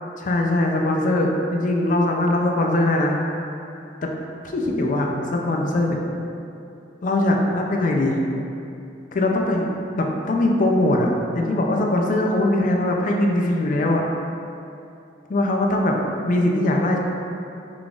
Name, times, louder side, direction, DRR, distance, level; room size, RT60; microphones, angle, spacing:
voice 1, 0.2-3.2 4.0-4.1 4.4-6.0 7.0-8.2 9.1-14.0 15.3-16.0 16.2-17.0, left 1 dB, 45° left, 1 dB, 0.4 m, -21 dB
3.8 x 3.5 x 2.4 m, 2.6 s
head